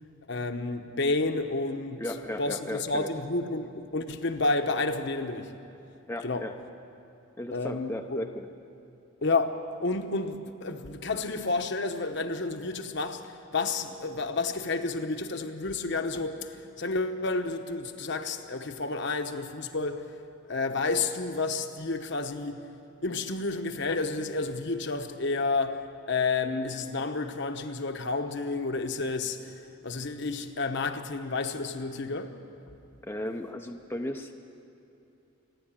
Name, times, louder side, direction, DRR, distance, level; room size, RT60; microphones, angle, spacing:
voice 1, 0.3-2.0 2.4-5.5 6.2-6.5 7.5-8.2 9.2-13.2 13.5-16.4 16.8-20.0 20.5-22.6 23.0-29.4 29.8-32.3, left 3 dB, 55° left, 1.0 m, -30 dB
voice 2, 2.0-3.1 6.1-6.5 7.4-8.5 33.1-34.3, left 1 dB, 10° left, 0.6 m, -35 dB
27.5 x 11.0 x 8.9 m
head